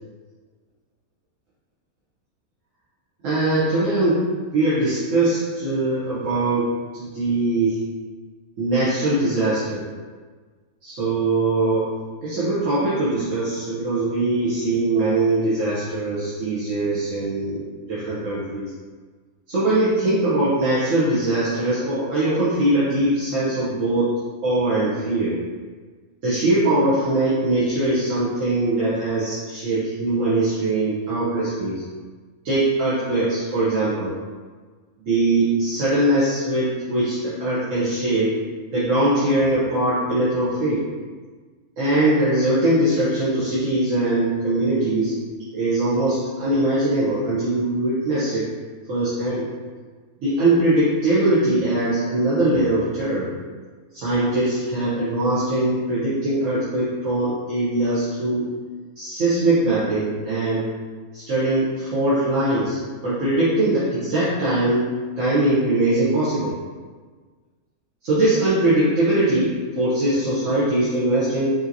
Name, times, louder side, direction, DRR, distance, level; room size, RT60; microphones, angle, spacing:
voice 1, 3.2-4.2 4.5-6.7 6.9-7.8 8.6-9.8 10.8-11.9 12.2-18.7 19.5-24.1 24.4-25.3 26.2-31.8 32.4-34.1 35.1-38.4 38.7-40.8 41.8-45.1 45.5-48.4 48.9-49.5 50.2-53.3 53.9-58.5 59.0-60.6 61.1-64.9 65.2-66.5 68.0-71.5, right 2 dB, 65° right, -11 dB, 1.3 m, -21 dB
5.3 x 2.8 x 2.7 m, 1.5 s
omnidirectional pair, 1.5 m